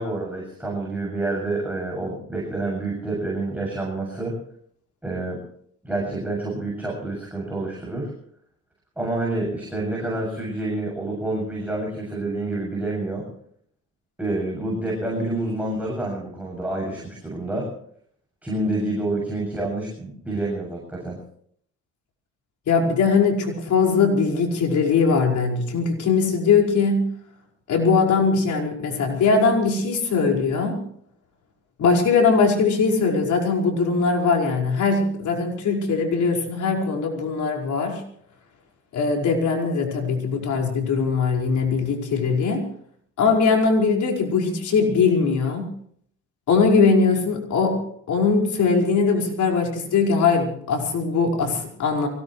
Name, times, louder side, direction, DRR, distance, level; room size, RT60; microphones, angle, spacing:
voice 1, 0.0-4.4 5.0-5.4 5.8-8.1 9.0-13.3 14.2-17.7 18.4-21.2, right 2 dB, 5° right, -3 dB, 7.4 m, -28 dB
voice 2, 22.7-27.1 27.7-30.8 31.8-38.0 38.9-42.6 43.2-45.7 46.5-52.1, left 4 dB, 70° left, 0 dB, 5.2 m, -21 dB
24.0 x 18.5 x 3.2 m, 0.63 s
cardioid pair, 90°, 30 cm